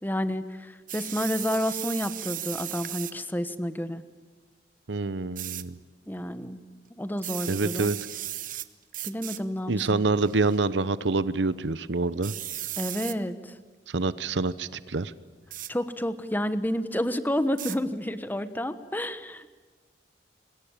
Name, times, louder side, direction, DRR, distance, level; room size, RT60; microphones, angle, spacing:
voice 1, 0.0-4.0 6.1-6.6 7.0-8.0 9.0-10.0 12.8-13.5 15.7-19.5, equal, 10° left, 11 dB, 1.2 m, -30 dB
sound 1, 0.9-3.2 5.4-5.6 7.2-8.7 8.9-9.4 10.2-10.6 12.2-13.2 15.5-15.7 17.6-17.8, right 13 dB, 50° right, 1.0 m, -36 dB
voice 2, 4.9-5.8 7.5-8.0 9.7-12.3 13.9-15.1, right 3 dB, 90° right, 16 dB, 0.8 m, -26 dB
26.5 x 22.0 x 8.8 m, 1.4 s
head